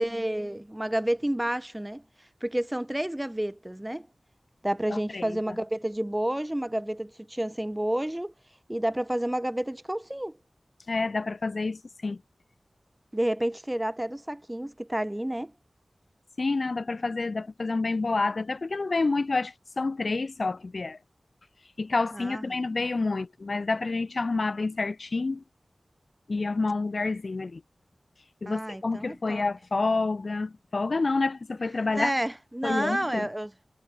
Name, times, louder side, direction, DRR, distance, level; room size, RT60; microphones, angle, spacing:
voice 1, 0.0-2.0 2.4-4.1 4.6-8.3 8.7-10.3 13.1-15.5 22.1-22.6 28.5-29.4 31.9-33.6, right 1 dB, 15° right, 0.7 m, -30 dB
voice 2, 4.9-5.4 10.9-12.2 16.4-21.0 21.8-25.4 26.3-27.6 28.4-32.1 32.6-33.3, left 3 dB, 65° left, 0.9 m, -28 dB
wide cardioid pair, 50°, 0 cm